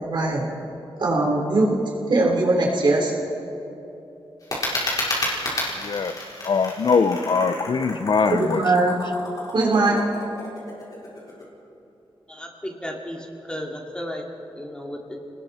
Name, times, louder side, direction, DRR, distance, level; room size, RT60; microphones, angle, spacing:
voice 1, 0.0-0.5 1.0-1.7 2.1-3.1 8.3-8.9 9.5-10.0, right 2 dB, 55° right, -2 dB, 4.2 m, -20 dB
sound 1, 4.4-11.4, left 1 dB, 40° left, 4.9 m, -31 dB
voice 2, 5.8-8.9, left 5 dB, 60° left, 10 dB, 0.9 m, -23 dB
voice 3, 12.3-14.3 14.5-15.2, equal, 10° left, 0 dB, 2.5 m, -34 dB
29.5 x 20.0 x 4.4 m, 2.9 s
wide cardioid pair, 115°, 9 cm